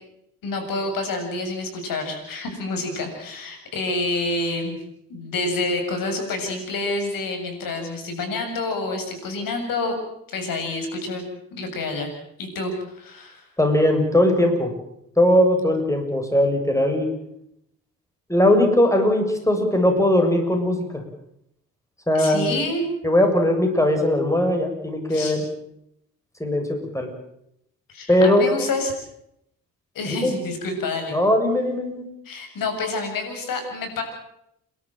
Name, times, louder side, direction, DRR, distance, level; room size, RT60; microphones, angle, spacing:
voice 1, 0.4-4.8 5.1-10.0 10.3-11.2 11.5-12.1 12.4-13.4 22.1-22.9 25.1-25.4 27.9-28.9 29.9-31.2 32.3-34.0, left 2 dB, 80° left, 5 dB, 7.5 m, -28 dB
voice 2, 13.6-14.7 15.2-17.1 18.3-21.0 22.1-22.5 23.0-25.4 26.4-27.1 28.1-28.4 30.0-30.3 31.1-32.0, left 1 dB, 10° left, 4 dB, 7.1 m, -19 dB
29.5 x 13.0 x 9.2 m, 0.77 s
cardioid pair, 65°, 33 cm